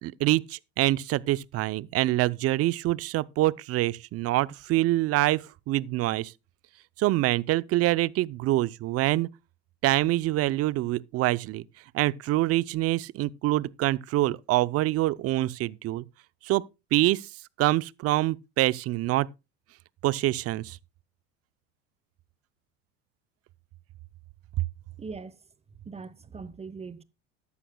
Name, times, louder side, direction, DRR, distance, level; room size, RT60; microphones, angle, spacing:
voice 1, 0.0-6.3 7.0-9.3 9.8-11.6 11.9-16.0 16.4-16.6 16.9-17.3 17.6-19.3 20.0-20.8, right 16 dB, 45° right, 0.6 m, -25 dB
voice 2, 25.0-25.4 25.7-27.0, right 4 dB, 20° right, 1.1 m, -41 dB
14.0 x 11.0 x 2.3 m
supercardioid pair, 95°, 33 cm